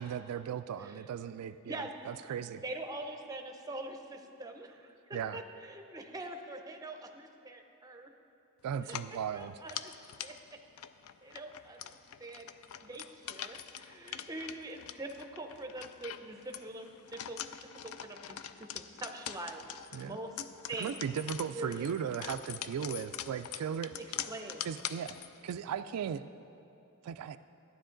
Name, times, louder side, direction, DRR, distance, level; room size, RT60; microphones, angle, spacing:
voice 1, 0.0-2.6 5.1-5.4 8.6-9.5 19.9-20.2 20.8-23.9 24.6-25.2 25.4-26.2 27.0-27.4, right 8 dB, 85° right, 12 dB, 0.3 m, -37 dB
voice 2, 2.4-8.1 8.8-9.0 9.3-9.9 10.2-10.6 11.2-12.5 12.8-19.6 19.9-20.4 20.7-21.0 21.5-21.9 24.0-24.7, right 2 dB, 15° right, 5 dB, 0.6 m, -44 dB
sound 1, 8.8-25.6, left 10 dB, 65° left, 0.4 m, -44 dB
12.5 x 9.6 x 3.8 m, 2.7 s
head